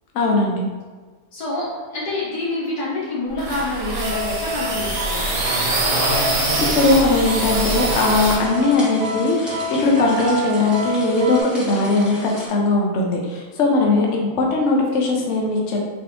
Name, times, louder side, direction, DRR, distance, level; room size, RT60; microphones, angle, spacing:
voice 1, 0.1-0.6 6.7-15.8, left 2 dB, 60° left, -1 dB, 0.9 m, -19 dB
voice 2, 1.3-5.5 13.8-14.0, left 2 dB, 90° left, -7 dB, 1.9 m, -27 dB
sound 1, 3.3-8.4, right 2 dB, 60° right, 1.1 m, -23 dB
sound 2, 4.0-11.4, left 2 dB, 80° right, 0.5 m, -29 dB
sound 3, 6.7-12.5, equal, ahead, 1.0 m, -36 dB
4.1 x 3.4 x 3.0 m, 1.4 s
omnidirectional pair, 1.6 m